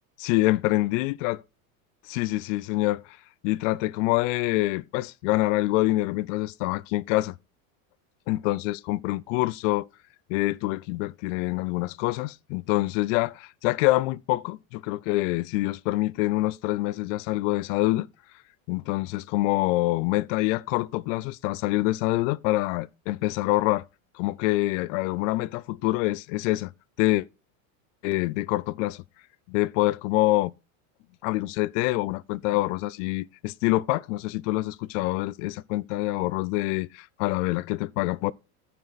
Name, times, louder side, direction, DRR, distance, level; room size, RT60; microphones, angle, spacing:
voice 1, 0.2-1.4 2.1-3.0 3.4-7.4 8.3-9.9 10.3-18.1 18.7-23.8 24.2-26.7 27.0-27.3 28.0-29.0 29.5-30.5 31.2-38.3, left 19 dB, 60° left, 0.5 m, -26 dB
14.0 x 4.7 x 4.0 m
supercardioid pair, 145°, 42 cm